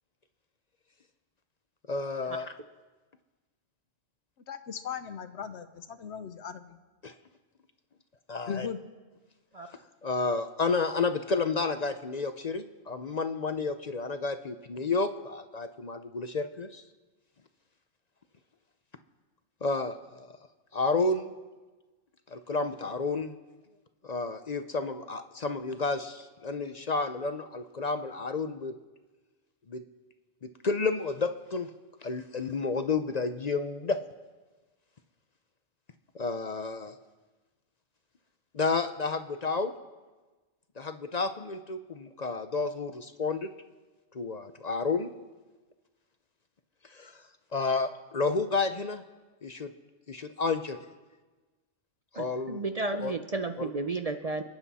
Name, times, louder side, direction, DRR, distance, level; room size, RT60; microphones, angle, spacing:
voice 1, 1.9-2.5 7.0-7.1 8.3-8.7 9.7-16.8 19.6-20.3 20.7-21.3 22.3-23.4 24.0-28.7 29.7-29.8 30.6-31.7 32.0-34.0 36.1-36.9 38.5-39.7 40.8-43.5 44.1-45.1 46.9-47.2 47.5-49.0 49.4-49.7 50.1-50.8 52.1-52.6 53.0-53.1 53.6-53.7, left 4 dB, 45° left, 9 dB, 0.6 m, -31 dB
voice 2, 4.5-6.8 8.5-8.8, left 7 dB, 70° left, 11 dB, 1.0 m, -38 dB
voice 3, 52.1-54.4, right 3 dB, 40° right, 7 dB, 0.6 m, -33 dB
28.0 x 9.8 x 4.2 m, 1.3 s
omnidirectional pair, 1.2 m